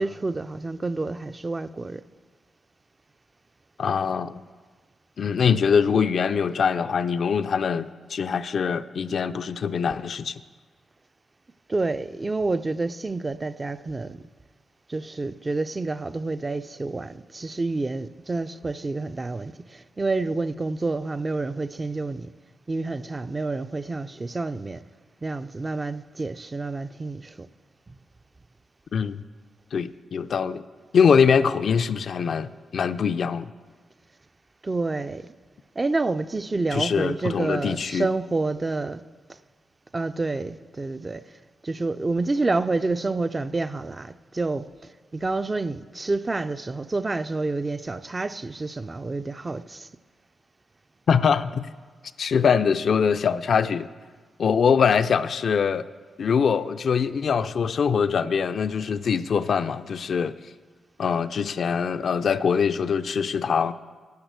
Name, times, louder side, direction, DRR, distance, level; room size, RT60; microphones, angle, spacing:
voice 1, 0.0-2.0 11.7-14.2 14.9-22.3 22.7-24.8 25.2-27.5 27.9-28.0 34.6-35.3 35.8-39.0 39.9-41.3 41.6-49.9, right 3 dB, 30° right, 0.3 m, -28 dB
voice 2, 3.8-4.4 5.2-10.4 28.9-29.2 29.7-30.6 30.9-33.5 36.7-38.1 51.1-51.6 52.2-53.9 54.4-55.9 56.2-60.3 61.0-63.7, left 6 dB, 65° left, 0.3 m, -23 dB
10.5 x 6.4 x 8.0 m
cardioid pair, 80°, 0 cm